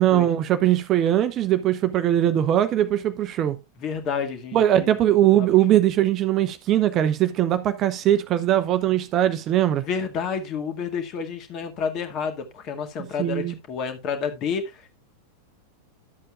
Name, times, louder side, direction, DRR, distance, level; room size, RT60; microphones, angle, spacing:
voice 1, 0.0-3.6 4.5-9.8 13.2-13.5, right 12 dB, 35° right, 0.8 m, -20 dB
voice 2, 3.8-4.9 5.3-5.5 9.8-14.9, left 6 dB, 35° left, 2.0 m, -30 dB
12.5 x 7.7 x 2.4 m
figure-of-eight pair, 90°, 0 cm